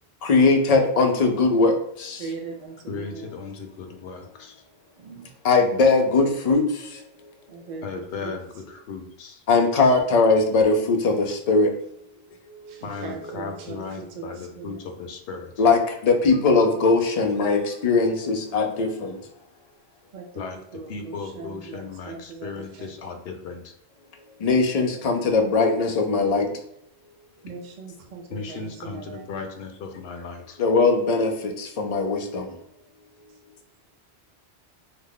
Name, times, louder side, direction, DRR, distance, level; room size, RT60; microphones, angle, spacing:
voice 1, 0.2-2.2 5.4-7.0 9.5-11.7 15.6-19.2 24.4-26.5 30.6-32.5, left 3 dB, 50° left, 3 dB, 0.5 m, -20 dB
voice 2, 2.2-3.3 5.0-5.3 7.5-7.8 8.2-8.3 12.7-14.8 20.1-22.9 27.4-29.3, right 4 dB, 55° right, 3 dB, 0.5 m, -39 dB
voice 3, 2.9-4.6 7.8-9.4 12.8-15.5 20.3-20.6 20.9-23.7 28.3-30.6, left 4 dB, 75° left, 4 dB, 0.8 m, -36 dB
3.2 x 2.1 x 3.7 m, 0.77 s
omnidirectional pair, 1.1 m